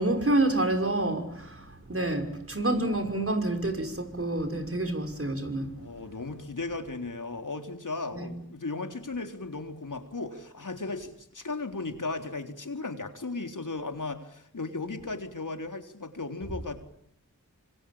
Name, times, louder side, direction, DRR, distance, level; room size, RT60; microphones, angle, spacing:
voice 1, 0.0-5.7 8.1-8.3, right 2 dB, 40° right, 5.8 m, -28 dB
voice 2, 5.8-16.8, left 3 dB, 60° left, 3.9 m, -36 dB
26.0 x 24.5 x 8.8 m
wide cardioid pair, 55°, 35 cm